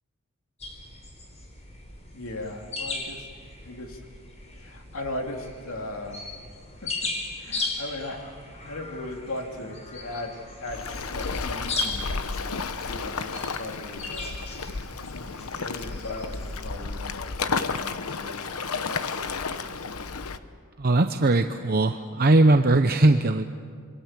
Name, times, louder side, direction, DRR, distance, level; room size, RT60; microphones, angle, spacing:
sound 1, 0.6-16.6, left 3 dB, 30° left, 4.3 m, -37 dB
voice 1, 2.1-3.3 3.6-4.0 4.5-6.3 6.8-6.9 7.4-14.4 15.1-19.6, left 1 dB, 70° left, 2 dB, 3.0 m, -38 dB
Waves surf, 10.7-20.4, left 4 dB, 90° left, 1.0 m, -32 dB
voice 2, 20.8-23.4, right 2 dB, 45° right, 7 dB, 0.8 m, -20 dB
27.0 x 24.0 x 7.6 m, 2.1 s
head